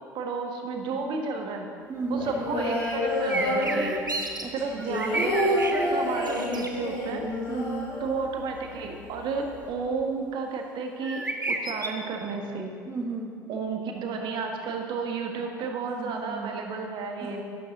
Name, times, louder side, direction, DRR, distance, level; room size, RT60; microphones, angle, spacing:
voice 1, 0.1-1.7 2.1-4.1 4.5-7.3 8.0-12.7 13.5-17.4, right 4 dB, 50° right, 3 dB, 1.7 m, -32 dB
voice 2, 1.9-2.3 4.4-5.3 7.5-8.0 12.9-13.4 15.9-16.5 17.2-17.4, right 3 dB, 25° right, 1 dB, 1.1 m, -35 dB
sound 1, 2.1-4.2 4.6-8.5 8.8-8.9 9.2-9.7, left 1 dB, 65° left, 3.5 m, -28 dB
sound 2, 3.3-4.4 4.8-5.9 6.2-6.7 11.0-11.9, right 2 dB, 85° right, 0.8 m, -31 dB
12.5 x 12.0 x 3.9 m, 2.3 s
figure-of-eight pair, 60°, 10 cm